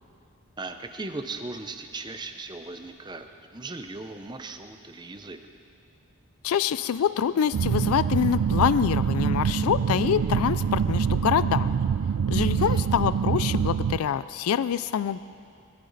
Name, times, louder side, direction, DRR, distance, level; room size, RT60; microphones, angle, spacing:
voice 1, 0.6-5.4 12.3-12.8, right 3 dB, 20° right, 7 dB, 0.6 m, -38 dB
voice 2, 6.4-11.7 12.3-15.2, left 8 dB, 75° left, 15 dB, 0.3 m, -25 dB
sound 1, 7.5-14.0, right 7 dB, 90° right, 0.4 m, -25 dB
20.5 x 12.5 x 4.0 m, 2.3 s
head